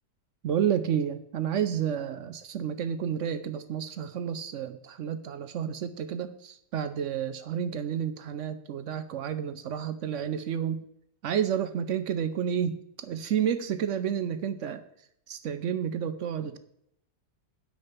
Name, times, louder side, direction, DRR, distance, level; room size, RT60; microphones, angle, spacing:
voice 1, 0.4-10.8 11.2-14.8 15.3-16.6, right 8 dB, 70° right, 11 dB, 0.7 m, -30 dB
9.7 x 6.5 x 5.7 m, 0.74 s
omnidirectional pair, 1.9 m